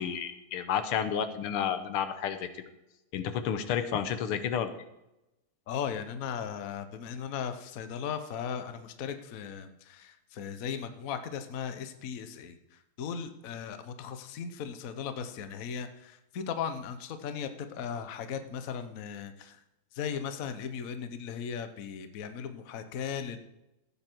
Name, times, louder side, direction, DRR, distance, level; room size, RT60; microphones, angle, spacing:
voice 1, 0.0-2.5 3.1-4.7, left 8 dB, 80° left, 10 dB, 1.8 m, -31 dB
voice 2, 5.7-19.6 19.9-23.4, left 7 dB, 55° left, 9 dB, 1.1 m, -37 dB
15.0 x 8.8 x 4.5 m, 0.92 s
omnidirectional pair, 2.4 m